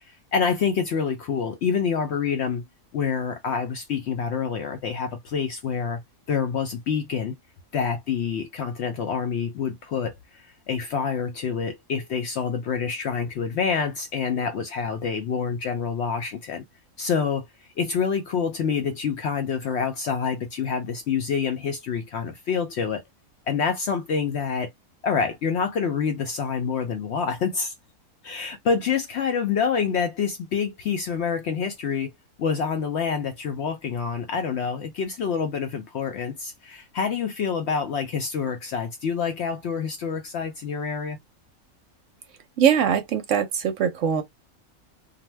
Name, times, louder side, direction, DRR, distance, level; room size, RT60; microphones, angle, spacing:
voice 1, 0.1-2.6 2.9-6.0 6.3-7.4 7.7-16.6 17.0-17.5 17.8-23.0 23.5-24.7 25.0-27.7 28.2-32.1 32.4-41.2, left 6 dB, 65° left, 0.7 m, -27 dB
voice 2, 42.6-44.2, right 8 dB, 65° right, 0.8 m, -22 dB
2.5 x 2.1 x 3.1 m
omnidirectional pair, 1.5 m